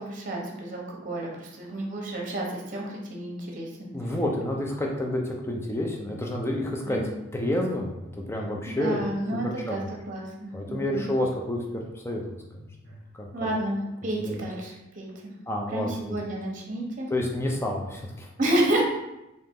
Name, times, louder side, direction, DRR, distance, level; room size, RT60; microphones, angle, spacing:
voice 1, 0.0-4.1 6.8-7.1 8.7-11.2 13.3-15.3 15.7-17.1 18.4-18.9, right 1 dB, 40° right, -1 dB, 0.9 m, -30 dB
voice 2, 3.9-7.0 7.3-9.1 9.4-9.9 10.5-12.6 13.2-13.5 14.2-14.4 15.5-15.9 17.1-18.3, left 1 dB, 10° left, 0 dB, 0.5 m, -29 dB
3.9 x 2.8 x 3.7 m, 0.92 s
head